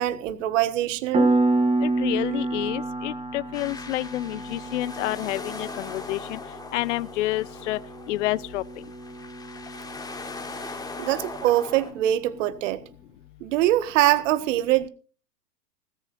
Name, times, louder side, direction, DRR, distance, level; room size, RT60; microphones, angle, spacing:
voice 1, 0.0-1.3 11.0-12.8 13.4-14.9, right 14 dB, 50° right, 1.6 m, -23 dB
Piano, 1.1-11.5, right 2 dB, 15° right, 2.7 m, -29 dB
voice 2, 1.8-6.4 6.7-7.8 8.1-8.6, left 17 dB, 50° left, 0.6 m, -29 dB
sound 1, 3.5-11.9, left 3 dB, 10° left, 3.4 m, -40 dB
19.5 x 13.5 x 2.6 m
hypercardioid pair, 130°, 49 cm